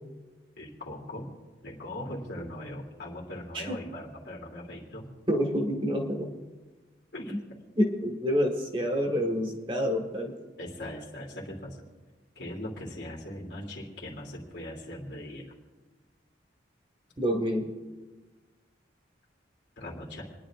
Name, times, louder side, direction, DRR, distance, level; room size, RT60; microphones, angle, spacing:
voice 1, 0.6-1.3 1.6-5.1 7.1-7.4 10.6-11.8 12.4-15.5 19.8-20.2, left 1 dB, 70° left, -1 dB, 2.9 m, -40 dB
voice 2, 5.3-6.3 7.8-10.3 17.2-17.7, equal, 30° right, 2 dB, 1.6 m, -28 dB
29.0 x 10.5 x 2.5 m, 1.3 s
head